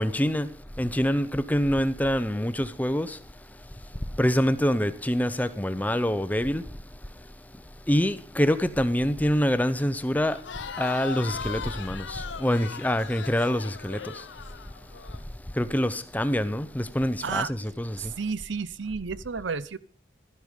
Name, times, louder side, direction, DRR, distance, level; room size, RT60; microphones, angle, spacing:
voice 1, 0.0-3.2 4.1-6.8 7.9-10.5 10.8-14.3 15.5-18.1, equal, 10° left, 0.7 m, -26 dB
Crowd, 10.2-15.2, left 6 dB, 75° left, 0.7 m, -39 dB
voice 2, 18.0-19.8, right 5 dB, 75° right, 0.7 m, -31 dB
12.5 x 11.0 x 5.2 m
head